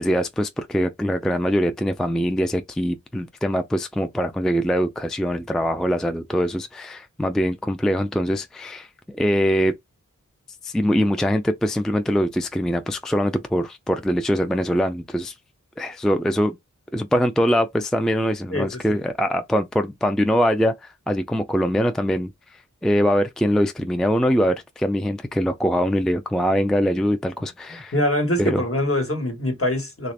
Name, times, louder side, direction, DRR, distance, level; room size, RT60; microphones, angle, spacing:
voice 1, 0.0-8.9 9.1-9.7 10.6-15.3 15.8-16.6 16.9-27.9 28.4-28.6, equal, ahead, 0.4 m, -23 dB
voice 2, 18.5-19.0 27.7-30.1, left 1 dB, 45° left, 1.4 m, -24 dB
3.3 x 2.5 x 3.2 m
wide cardioid pair, 45°, 30 cm